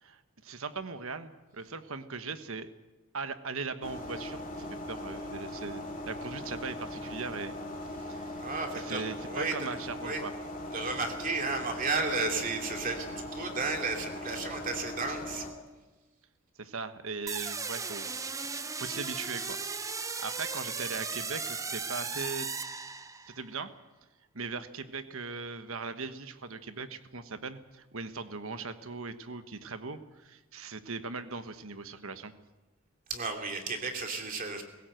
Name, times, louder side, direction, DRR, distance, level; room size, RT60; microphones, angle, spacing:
voice 1, 0.0-2.7 3.1-7.5 8.0-8.5 8.7-10.3 16.6-18.1 18.4-19.6 20.0-22.7 23.2-23.7 24.3-32.3, right 4 dB, 65° right, 10 dB, 1.3 m, -39 dB
sound 1, 3.8-15.5, left 1 dB, 40° left, 2.5 m, -40 dB
voice 2, 8.4-9.7 10.0-10.2 10.7-15.5 33.1-34.6, right 3 dB, 40° right, 3 dB, 2.8 m, -33 dB
sound 2, 17.3-23.4, right 4 dB, 15° right, 0.6 m, -36 dB
20.5 x 16.5 x 7.8 m, 1.1 s
head